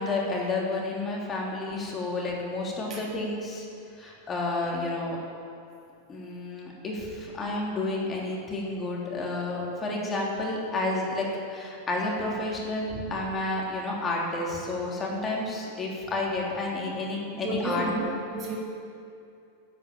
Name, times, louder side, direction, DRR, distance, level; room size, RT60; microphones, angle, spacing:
voice 1, 0.0-3.7 4.0-5.2 6.1-17.8, left 2 dB, 20° left, -3 dB, 3.3 m, -30 dB
voice 2, 17.3-18.6, right 2 dB, 30° right, -2 dB, 2.6 m, -32 dB
13.0 x 8.7 x 8.9 m, 2.5 s
figure-of-eight pair, 90°, 0 cm